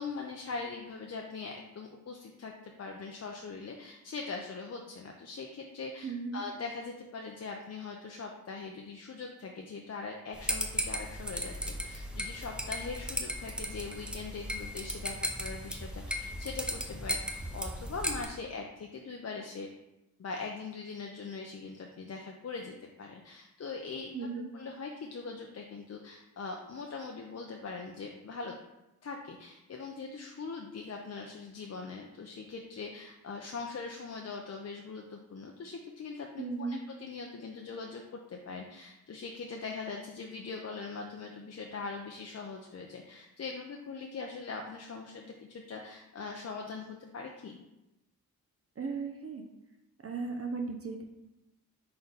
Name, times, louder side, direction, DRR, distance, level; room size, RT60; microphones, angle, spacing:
voice 1, 0.0-19.7 20.2-24.3 24.5-28.5 29.0-47.6, left 4 dB, 40° left, 2 dB, 0.6 m, -41 dB
voice 2, 6.0-6.4 24.1-24.5 36.4-36.8 48.8-49.4 50.0-51.0, right 4 dB, 35° right, 3 dB, 0.6 m, -36 dB
sound 1, 10.3-18.3, equal, 5° right, 0.7 m, -36 dB
4.1 x 3.3 x 3.9 m, 0.95 s
cardioid pair, 45°, 38 cm